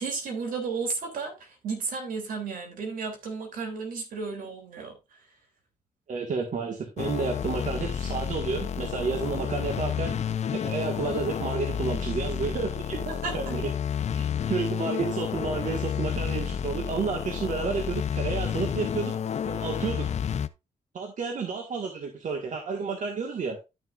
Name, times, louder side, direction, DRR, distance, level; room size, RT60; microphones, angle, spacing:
voice 1, 0.0-5.2 13.0-13.4, right 4 dB, 80° right, 3.0 m, -33 dB
voice 2, 6.1-10.2 10.5-13.0 13.3-13.7 14.1-19.1 19.4-20.2 20.9-23.6, right 5 dB, 65° right, 1.7 m, -31 dB
sound 1, 7.0-20.5, left 8 dB, 50° left, 0.5 m, -30 dB
12.0 x 6.5 x 2.5 m
cardioid pair, 80°, 14 cm